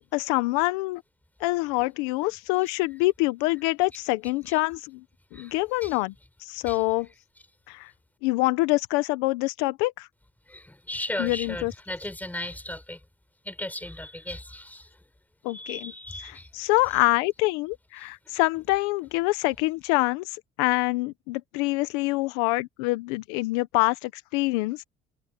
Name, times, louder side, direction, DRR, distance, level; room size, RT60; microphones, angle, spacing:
voice 1, 0.1-1.0 1.4-5.0 5.3-6.1 6.4-7.1 7.7-7.9 8.2-10.1 11.2-11.7 15.4-15.9 16.2-20.3 20.6-24.8, left 21 dB, 85° left, 1.1 m, -25 dB
voice 2, 5.3-6.0 6.7-6.8 10.5-13.0 13.4-14.9 15.5-16.5, left 1 dB, 10° left, 6.5 m, -36 dB
supercardioid pair, 80°, 21 cm